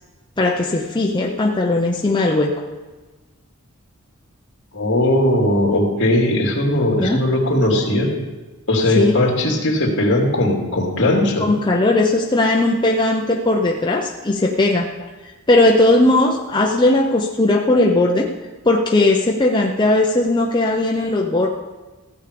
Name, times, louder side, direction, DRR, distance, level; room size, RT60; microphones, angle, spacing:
voice 1, 0.4-2.5 7.0-7.2 9.0-9.1 11.4-14.9 15.5-18.3 18.6-21.5, left 2 dB, 20° left, -1 dB, 0.7 m, -17 dB
voice 2, 4.7-8.1 8.7-11.5, left 1 dB, 55° left, 0 dB, 2.7 m, -18 dB
15.5 x 8.2 x 5.2 m, 1.2 s
head